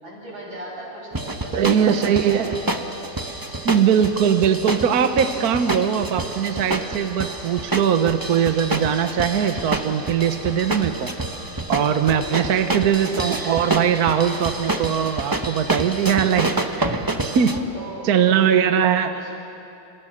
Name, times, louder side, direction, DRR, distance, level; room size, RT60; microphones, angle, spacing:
voice 1, 0.0-2.7 12.0-12.6 17.4-18.5 19.1-19.4, right 1 dB, 80° right, -4 dB, 8.8 m, -38 dB
sound 1, 1.1-17.6, right 2 dB, 15° right, 0.7 m, -28 dB
voice 2, 1.5-2.5 3.6-11.1 11.7-17.5 18.0-19.1, right 8 dB, 55° right, 8 dB, 1.3 m, -20 dB
29.5 x 27.5 x 6.4 m, 2.8 s
omnidirectional pair, 2.1 m